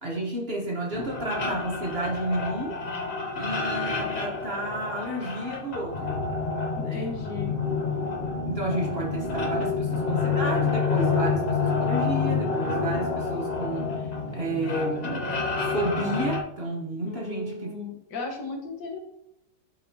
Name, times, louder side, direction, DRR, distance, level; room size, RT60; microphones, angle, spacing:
voice 1, 0.0-2.8 3.3-6.2 6.8-7.1 8.5-17.7, right 1 dB, 40° right, -2 dB, 1.2 m, -31 dB
sound 1, 0.9-16.4, left 4 dB, 45° left, 0.5 m, -28 dB
voice 2, 6.8-7.6 17.1-19.0, left 3 dB, 70° left, 1 dB, 1.8 m, -36 dB
11.5 x 4.1 x 2.8 m, 0.84 s
omnidirectional pair, 1.9 m